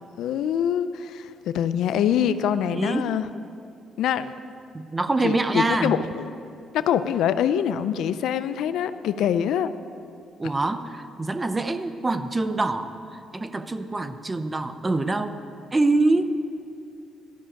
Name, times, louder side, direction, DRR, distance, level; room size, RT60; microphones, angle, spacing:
voice 1, 0.2-3.3 4.0-4.3 5.2-6.3 6.7-9.7 10.4-10.5, left 9 dB, 80° left, 13 dB, 0.5 m, -24 dB
voice 2, 2.7-3.1 4.7-6.0 10.4-15.4 15.7-16.4, right 2 dB, 20° right, 11 dB, 0.7 m, -25 dB
13.5 x 6.3 x 8.9 m, 2.5 s
cardioid pair, 90°, 0 cm